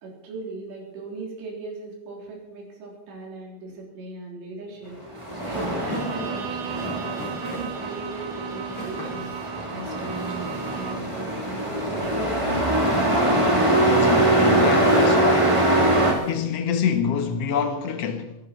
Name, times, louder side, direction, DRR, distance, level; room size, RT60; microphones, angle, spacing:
voice 1, 0.0-5.0 5.4-6.9 7.2-9.3 9.7-12.3, right 3 dB, 90° right, 5.7 m, -38 dB
sound 1, 4.7-16.4, left 1 dB, 35° left, 6.3 m, -43 dB
Truck, 5.0-16.1, right 1 dB, 10° right, 2.5 m, -23 dB
Bowed string instrument, 5.7-11.2, right 10 dB, 70° right, 3.0 m, -36 dB
voice 2, 13.8-15.7 16.2-18.4, left 7 dB, 80° left, 1.4 m, -26 dB
24.0 x 11.5 x 4.5 m
omnidirectional pair, 4.8 m